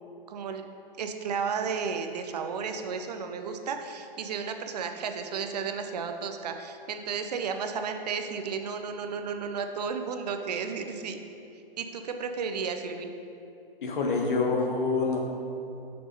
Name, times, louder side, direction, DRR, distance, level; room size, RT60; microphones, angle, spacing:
voice 1, 0.3-0.7 1.0-11.2 11.8-13.1, right 5 dB, 45° right, 6 dB, 0.6 m, -33 dB
voice 2, 13.8-15.2, left 4 dB, 60° left, 1 dB, 1.5 m, -26 dB
6.2 x 6.1 x 5.2 m, 2.7 s
figure-of-eight pair, 125°, 29 cm